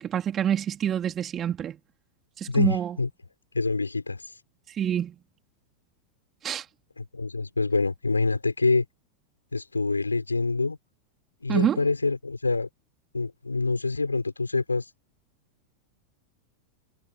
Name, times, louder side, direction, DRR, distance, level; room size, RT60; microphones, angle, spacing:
voice 1, 0.0-1.8 2.4-3.0 4.7-5.1 6.4-6.7 11.5-11.8, right 9 dB, 25° right, 3.3 m, -26 dB
voice 2, 2.5-3.1 3.5-4.4 7.0-8.8 9.5-10.8 11.4-12.7 13.1-14.9, left 3 dB, 80° left, 4.4 m, -26 dB
figure-of-eight pair, 90°, 0 cm